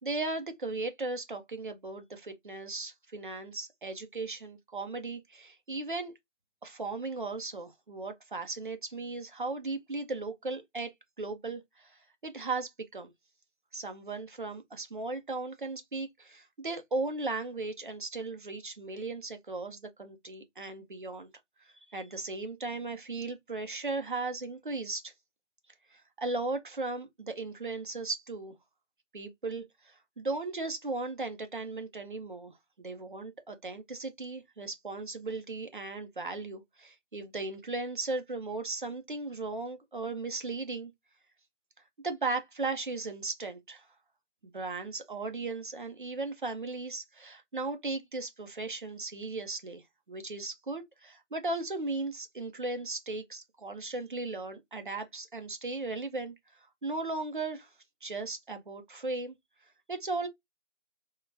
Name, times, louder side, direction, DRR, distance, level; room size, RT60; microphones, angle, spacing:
voice 1, 0.0-6.1 6.6-13.1 13.7-21.3 21.9-25.1 25.9-28.5 29.1-40.9 42.0-43.9 44.4-49.8 50.1-56.3 56.8-57.7 58.0-59.3 59.9-60.3, right 3 dB, 45° right, 0.6 m, -37 dB
3.7 x 2.2 x 2.5 m
figure-of-eight pair, 175°, 36 cm